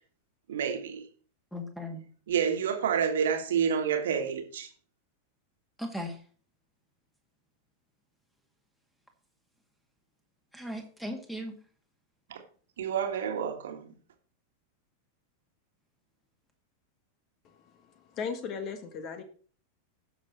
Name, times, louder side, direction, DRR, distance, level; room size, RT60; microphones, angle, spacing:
voice 1, 0.5-1.1 2.3-4.7 12.3-12.4 12.8-13.9, right 7 dB, 60° right, 1.7 m, -29 dB
voice 2, 1.5-2.0 5.8-6.2 10.5-11.6, equal, ahead, 2.1 m, -37 dB
voice 3, 17.4-19.2, left 6 dB, 35° left, 1.6 m, -38 dB
16.5 x 6.5 x 3.1 m
figure-of-eight pair, 90°, 0 cm